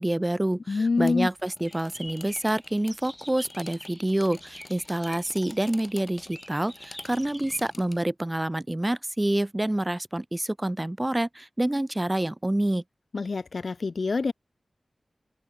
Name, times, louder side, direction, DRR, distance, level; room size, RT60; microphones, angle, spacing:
voice 1, 0.0-12.8, right 1 dB, 20° right, 0.3 m, -27 dB
voice 2, 0.7-1.3 13.1-14.3, left 4 dB, 65° left, 0.4 m, -26 dB
sound 1, 1.0-8.0, left 3 dB, 45° left, 0.9 m, -48 dB
sound 2, 1.6-7.6, equal, 5° left, 3.2 m, -46 dB
wide cardioid pair, 85°, 0 cm